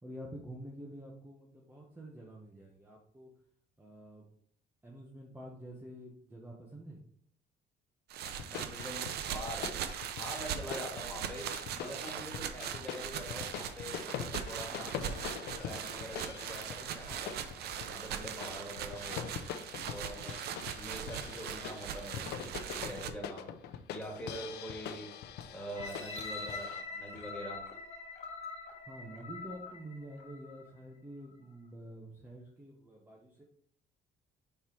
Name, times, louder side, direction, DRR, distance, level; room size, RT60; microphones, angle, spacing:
voice 1, 0.0-3.3 3.8-4.3 4.8-7.0 28.8-33.4, right 1 dB, 10° right, -2 dB, 1.2 m, -48 dB
sound 1, 8.1-23.1, right 9 dB, 70° right, 0.7 m, -40 dB
sound 2, 8.3-26.8, left 8 dB, 75° left, 0.6 m, -43 dB
voice 2, 8.5-9.8 10.2-11.5 11.7-15.0 15.6-17.3 17.8-19.3 19.9-20.3 20.7-25.1 25.5-27.6, equal, 5° left, -3 dB, 2.8 m, -44 dB
sound 3, 25.7-30.7 31.3-31.4, left 4 dB, 40° left, 1.6 m, -44 dB
5.6 x 4.3 x 4.7 m, 0.62 s
cardioid pair, 110°, 17 cm